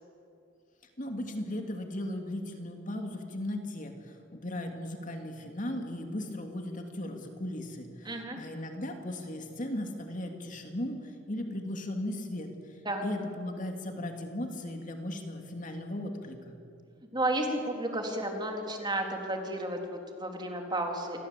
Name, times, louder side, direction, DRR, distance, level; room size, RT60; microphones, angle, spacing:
voice 1, 1.0-16.6, left 1 dB, 40° left, 4 dB, 2.8 m, -37 dB
voice 2, 8.0-8.4 12.9-13.0 17.1-21.2, right 1 dB, 25° right, 2 dB, 3.6 m, -32 dB
28.5 x 23.0 x 8.5 m, 2.5 s
head